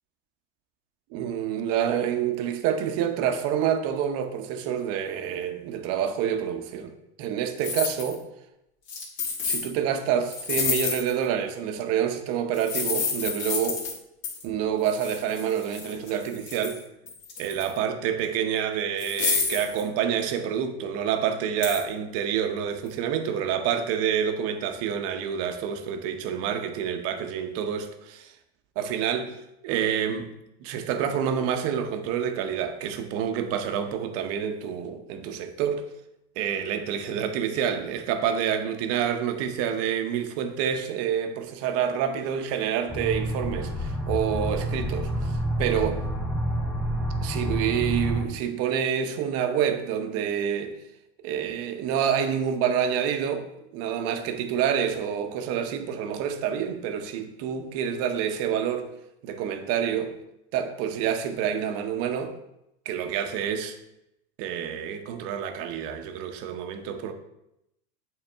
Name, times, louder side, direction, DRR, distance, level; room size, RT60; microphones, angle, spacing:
voice 1, 1.1-8.2 9.4-13.8 14.4-16.8 17.4-28.3 28.8-29.4 29.6-30.3 30.6-35.8 36.4-46.0 47.2-50.7 51.2-53.5 53.7-58.9 59.2-60.1 60.5-62.3 62.9-63.7 64.4-67.1, right 8 dB, 45° right, 0.8 m, -28 dB
sound 1, 7.6-8.2 8.9-9.7 10.3-11.2 12.5-14.0 14.2-14.4 14.8-16.8 17.1-17.8 18.2-18.3 19.0-19.8 21.6-21.8, left 5 dB, 60° left, 2.1 m, -29 dB
sound 2, 42.9-48.3, right 1 dB, 5° right, 0.7 m, -28 dB
8.8 x 3.6 x 3.5 m
supercardioid pair, 125°, 32 cm